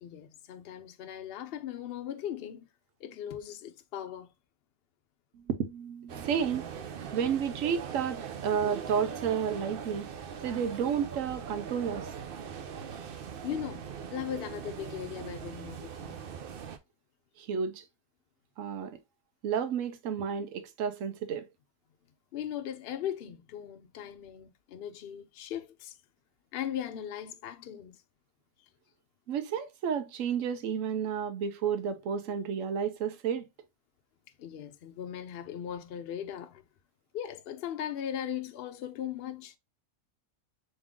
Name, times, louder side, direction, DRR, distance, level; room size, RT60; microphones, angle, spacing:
voice 1, 0.0-2.7 3.0-4.3 13.4-13.8 14.1-16.2 22.3-25.9 26.5-28.0 34.4-36.6 37.1-39.5, left 10 dB, 65° left, 0.6 m, -38 dB
voice 2, 5.3-6.7 7.1-10.1 10.4-12.1 17.4-17.8 18.6-19.0 19.4-21.5 29.3-33.5, right 7 dB, 80° right, 1.0 m, -31 dB
sound 1, 6.1-16.8, right 7 dB, 55° right, 0.7 m, -41 dB
3.6 x 3.1 x 3.6 m
omnidirectional pair, 1.4 m